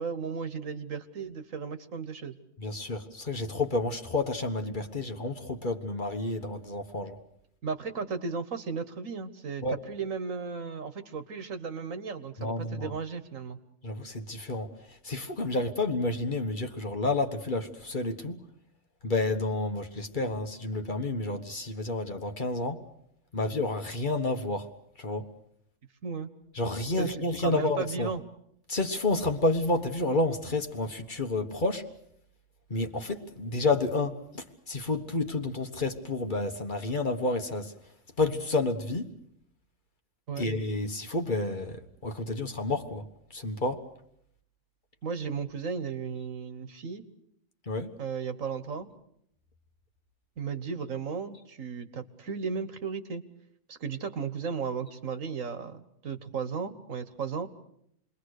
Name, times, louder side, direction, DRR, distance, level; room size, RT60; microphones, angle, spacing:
voice 1, 0.0-2.3 7.6-13.6 26.0-26.3 27.0-28.2 40.3-40.5 45.0-47.0 48.0-48.9 50.4-53.2 53.7-57.5, right 5 dB, 80° right, 1.8 m, -35 dB
voice 2, 2.6-7.2 9.6-9.7 12.4-12.9 13.8-14.7 15.0-18.4 19.0-22.8 23.3-24.7 25.0-25.3 26.5-28.1 28.7-31.8 32.7-37.7 38.2-39.1 40.4-41.8 42.0-43.0 43.3-43.8 47.7-47.9, left 2 dB, 40° left, 1.5 m, -30 dB
28.5 x 21.5 x 6.6 m
omnidirectional pair, 1.4 m